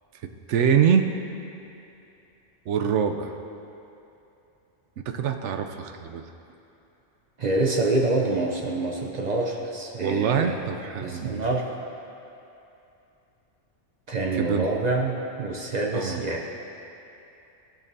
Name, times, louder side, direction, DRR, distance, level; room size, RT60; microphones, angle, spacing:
voice 1, 0.5-1.1 2.7-3.3 5.1-6.2 10.0-11.4 14.4-14.7 15.9-16.2, right 7 dB, 75° right, 6 dB, 0.9 m, -24 dB
voice 2, 7.4-10.6 11.0-11.7 14.1-16.5, right 2 dB, 45° right, 0 dB, 0.6 m, -26 dB
15.5 x 6.5 x 2.7 m, 2.8 s
omnidirectional pair, 1.2 m